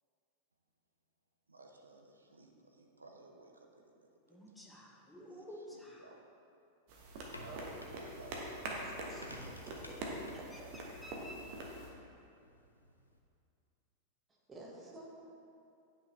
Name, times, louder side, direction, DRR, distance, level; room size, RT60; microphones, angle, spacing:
voice 1, 1.5-4.4 5.3-6.2 7.2-8.9, right 3 dB, 80° right, 2 dB, 0.7 m, -57 dB
voice 2, 4.3-6.0 10.5-10.6 11.0-11.4, equal, 5° left, -3 dB, 1.1 m, -51 dB
sound 1, 6.9-11.9, right 1 dB, 45° right, 1.1 m, -44 dB
sound 2, 7.0-13.2, equal, 85° left, 0.6 m, -55 dB
voice 3, 9.1-10.7 14.3-15.1, right 2 dB, 20° right, -3 dB, 1.3 m, -52 dB
9.4 x 5.4 x 3.2 m, 2.6 s
figure-of-eight pair, 90°, 0 cm